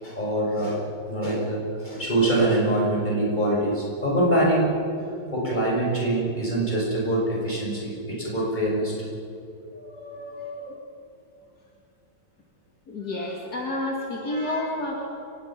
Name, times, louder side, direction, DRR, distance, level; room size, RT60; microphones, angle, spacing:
voice 1, 0.0-4.7 5.3-9.1 9.7-10.8 14.3-14.7, right 1 dB, 25° left, -4 dB, 6.7 m, -25 dB
voice 2, 12.9-15.0, left 1 dB, 65° left, -2 dB, 3.1 m, -29 dB
29.5 x 18.5 x 6.0 m, 2.7 s
omnidirectional pair, 1.8 m